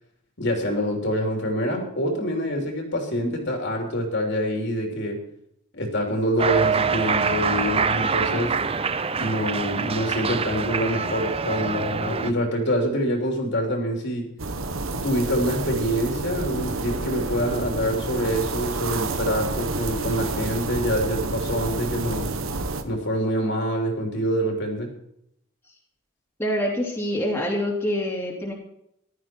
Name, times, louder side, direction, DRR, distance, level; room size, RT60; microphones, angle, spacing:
voice 1, 0.4-5.2 5.7-8.5 9.2-14.2 15.0-22.3 22.8-24.9, equal, 55° left, 2 dB, 3.3 m, -26 dB
Cheering, 6.4-12.3, right 5 dB, 25° right, 0.5 m, -25 dB
sound 1, 14.4-22.8, right 3 dB, 75° right, 1.3 m, -29 dB
voice 2, 26.4-28.5, left 1 dB, 10° left, -2 dB, 2.8 m, -26 dB
15.0 x 12.5 x 4.6 m, 0.75 s
head